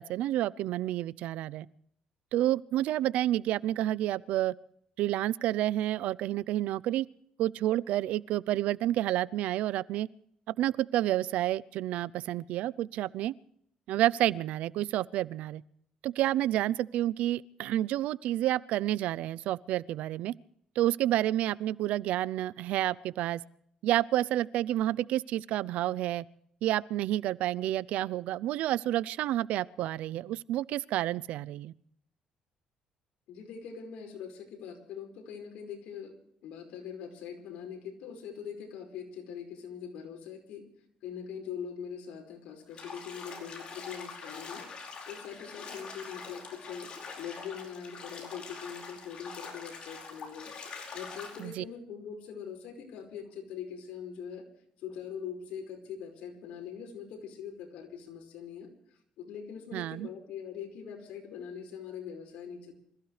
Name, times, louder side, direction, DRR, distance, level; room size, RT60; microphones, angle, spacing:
voice 1, 0.0-1.7 2.3-4.5 5.0-7.1 7.4-10.1 10.6-13.3 13.9-15.6 16.0-20.3 20.8-23.4 23.8-26.2 26.6-31.7 51.4-51.6 59.7-60.1, right 14 dB, 80° right, 0.5 m, -29 dB
voice 2, 33.3-36.1 36.4-40.7 41.0-44.7 45.1-46.9 47.2-50.5 50.9-54.4 54.8-58.7 59.2-62.7, left 7 dB, 85° left, 5.1 m, -42 dB
Bathtub (filling or washing), 42.7-51.5, left 4 dB, 45° left, 4.8 m, -44 dB
26.5 x 15.5 x 3.3 m
cardioid pair, 120°, 2 cm